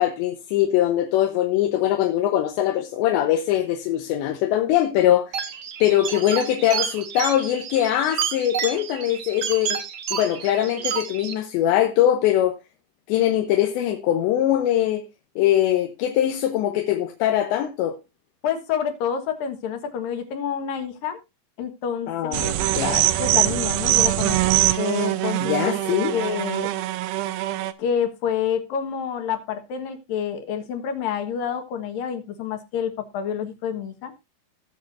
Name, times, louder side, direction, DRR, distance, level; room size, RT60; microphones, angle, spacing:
voice 1, 0.0-5.3 5.8-9.8 10.1-12.6 13.1-15.0 15.4-18.0 22.1-23.1 25.4-26.1, left 12 dB, 85° left, 3.3 m, -22 dB
sound 1, 5.3-11.3, right 8 dB, 60° right, 2.0 m, -30 dB
voice 2, 18.4-21.2 21.6-22.5 23.2-24.4 24.8-25.7 26.1-26.7 27.8-34.1, left 8 dB, 65° left, 2.9 m, -28 dB
sound 2, 22.3-27.7, right 15 dB, 80° right, 2.7 m, -23 dB
19.5 x 6.6 x 2.6 m
omnidirectional pair, 5.0 m